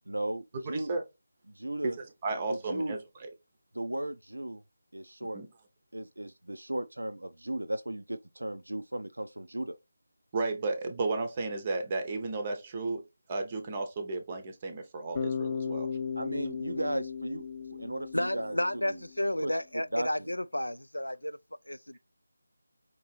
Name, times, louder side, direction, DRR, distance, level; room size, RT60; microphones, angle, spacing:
voice 1, 0.1-0.9 1.5-2.0 2.5-2.9 3.7-4.6 4.9-5.4 5.9-9.8 16.2-18.6 18.9-19.0 19.4-19.5 19.9-20.3, right 1 dB, 80° right, 0.4 m, -36 dB
voice 2, 0.7-1.0 2.2-3.0 5.3-5.5 10.3-13.0 13.3-15.9, right 3 dB, 25° right, 0.6 m, -33 dB
Bass guitar, 15.1-19.2, left 6 dB, 30° left, 0.5 m, -36 dB
voice 3, 18.1-21.4 21.7-22.0, left 1 dB, 90° left, 0.4 m, -32 dB
5.2 x 2.8 x 3.1 m
figure-of-eight pair, 160°, 0 cm